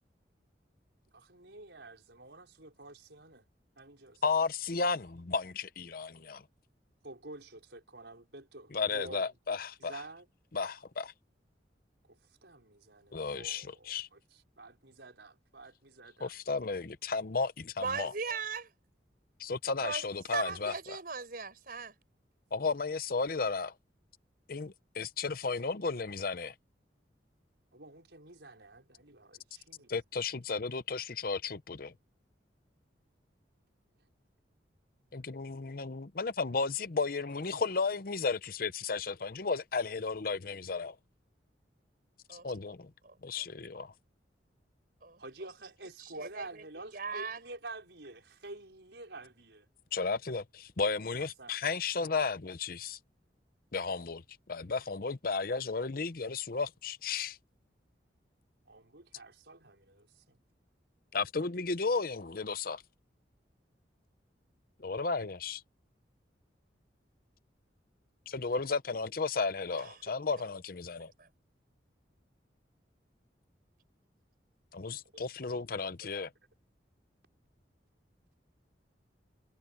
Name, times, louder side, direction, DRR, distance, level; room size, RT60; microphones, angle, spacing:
voice 1, 1.1-3.5 3.8-4.2 7.0-9.3 9.8-10.3 12.1-16.3 27.7-29.9 45.2-49.7 51.4-51.6 58.7-60.4 75.7-76.1, right 2 dB, 75° right, 5.2 m, -49 dB
voice 2, 4.2-6.4 8.7-10.0 10.5-11.1 13.1-14.1 16.2-18.1 19.4-20.7 22.5-23.7 24.5-26.5 29.9-31.9 35.1-41.0 42.3-42.9 43.2-43.9 49.9-53.0 53.7-54.2 54.5-57.4 61.1-62.8 64.8-65.6 68.3-71.1 74.7-76.3, left 4 dB, 55° left, 0.8 m, -34 dB
voice 3, 17.8-18.7 19.8-20.1 20.3-21.9 42.3-42.5 43.0-43.2 45.0-45.2 46.0-46.6 46.9-47.4 69.8-69.9 71.2-71.3, right 4 dB, 55° right, 5.0 m, -38 dB
head